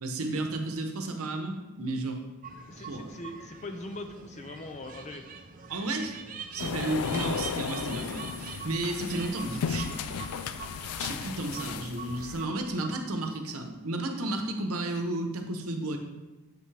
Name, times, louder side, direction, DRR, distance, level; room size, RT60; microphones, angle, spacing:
voice 1, 0.0-2.2 2.8-3.2 5.7-6.2 6.5-10.2 11.0-16.0, right 2 dB, 75° right, 4 dB, 0.9 m, -33 dB
sound 1, 2.4-13.3, right 5 dB, 35° right, 0.5 m, -44 dB
voice 2, 2.7-5.2, left 2 dB, 30° left, 6 dB, 0.5 m, -41 dB
sound 2, 6.6-12.4, left 7 dB, 90° left, 0.4 m, -35 dB
7.6 x 5.6 x 3.3 m, 1.1 s
head